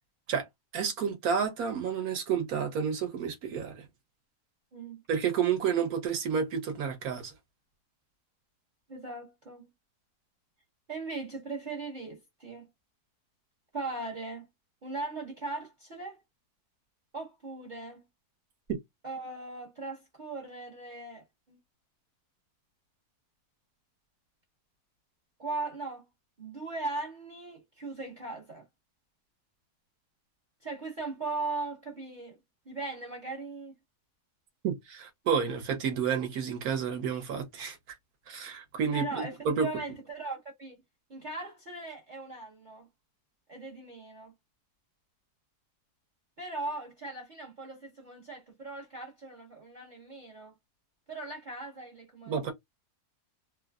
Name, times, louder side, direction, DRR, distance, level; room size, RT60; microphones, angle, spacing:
voice 1, 0.7-3.8 5.1-7.3 34.6-37.8 38.3-39.7 52.3-52.5, right 7 dB, 70° right, 1.3 m, -30 dB
voice 2, 4.7-5.0 8.9-9.6 10.9-12.7 13.7-14.5 14.8-16.2 17.1-18.0 19.0-21.6 25.4-26.1 26.4-28.6 30.6-32.4 32.7-33.8 38.9-39.3 39.6-40.8 41.1-42.9 43.5-44.3 46.4-50.5 51.1-52.5, right 3 dB, 40° right, 0.8 m, -39 dB
3.2 x 2.1 x 2.3 m
omnidirectional pair, 1.7 m